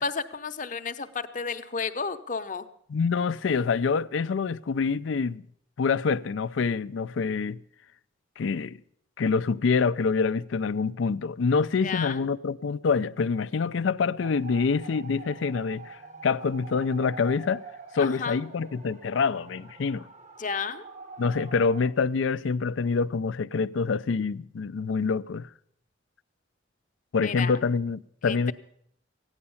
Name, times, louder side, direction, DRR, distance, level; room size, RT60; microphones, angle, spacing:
voice 1, 0.0-2.6 11.8-12.3 18.0-18.4 20.4-20.8 27.2-27.6 28.2-28.5, left 5 dB, 40° left, 0.8 m, -32 dB
voice 2, 2.9-5.4 5.8-7.6 8.4-8.8 9.2-17.6 17.9-20.1 21.2-25.5 27.1-28.5, left 5 dB, 75° left, 0.4 m, -26 dB
sound 1, 14.2-21.9, right 3 dB, 40° right, 0.9 m, -45 dB
15.0 x 9.8 x 7.0 m
head